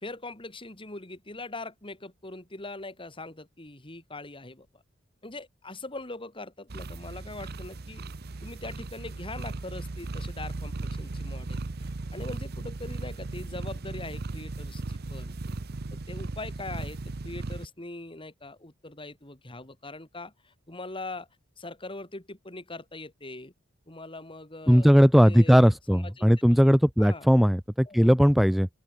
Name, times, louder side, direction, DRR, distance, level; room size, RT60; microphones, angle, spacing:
voice 1, 0.0-4.8 5.2-8.0 8.4-11.6 12.1-15.3 15.9-17.0 17.2-21.3 21.6-23.5 23.9-24.9 25.2-26.6 27.0-27.3 27.9-28.1, left 2 dB, 25° left, 3.4 m, -41 dB
sound 1, 6.7-17.7, right 2 dB, 50° right, 0.8 m, -37 dB
voice 2, 24.7-28.7, equal, ahead, 0.4 m, -19 dB
open air
head